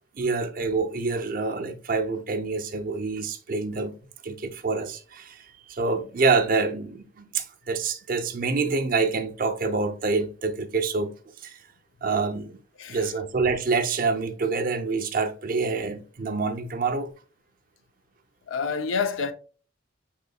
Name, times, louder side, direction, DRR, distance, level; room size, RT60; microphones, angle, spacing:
voice 1, 0.2-4.0 4.2-11.1 11.4-11.6 12.0-12.6 12.9-17.1, right 4 dB, 45° right, 0.5 m, -26 dB
voice 2, 12.8-13.1 18.5-19.3, left 5 dB, 85° left, 0.5 m, -28 dB
5.5 x 3.9 x 2.2 m
head